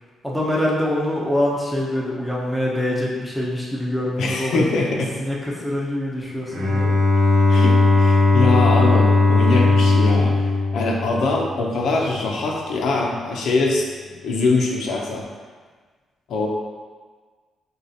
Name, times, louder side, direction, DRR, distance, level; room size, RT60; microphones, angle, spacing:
voice 1, 0.2-6.9, left 1 dB, ahead, -5 dB, 0.7 m, -25 dB
voice 2, 4.2-5.1 7.5-13.8 14.2-15.2 16.3-16.5, left 3 dB, 70° left, -1 dB, 0.6 m, -23 dB
Bowed string instrument, 6.5-11.7, left 3 dB, 40° right, 1.2 m, -17 dB
6.5 x 2.4 x 2.8 m, 1.5 s
cardioid pair, 155°, 0 cm